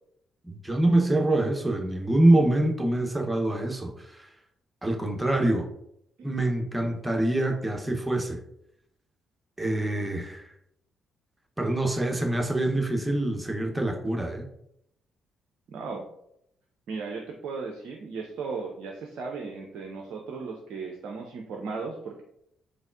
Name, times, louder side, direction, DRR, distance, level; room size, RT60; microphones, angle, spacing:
voice 1, 0.5-4.2 4.8-5.7 6.2-8.4 9.6-10.5 11.6-14.5, right 1 dB, 10° right, 2 dB, 0.8 m, -25 dB
voice 2, 15.7-16.0 16.9-22.2, right 4 dB, 55° right, 2 dB, 0.4 m, -36 dB
4.0 x 3.2 x 2.4 m, 0.77 s
figure-of-eight pair, 40°, 0 cm